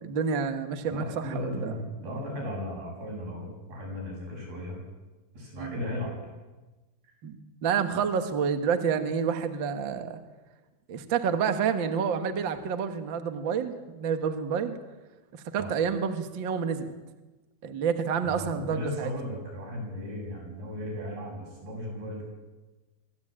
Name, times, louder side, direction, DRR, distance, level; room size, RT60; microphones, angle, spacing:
voice 1, 0.0-1.7 5.6-5.8 7.2-7.4 7.6-10.2 10.9-14.7 15.3-16.9 17.6-19.1, right 6 dB, 50° right, 7 dB, 1.5 m, -29 dB
voice 2, 0.9-4.8 5.3-6.2 15.6-15.7 18.2-22.3, left 1 dB, 90° right, -1 dB, 9.9 m, -36 dB
25.0 x 15.5 x 8.9 m, 1.2 s
omnidirectional pair, 4.3 m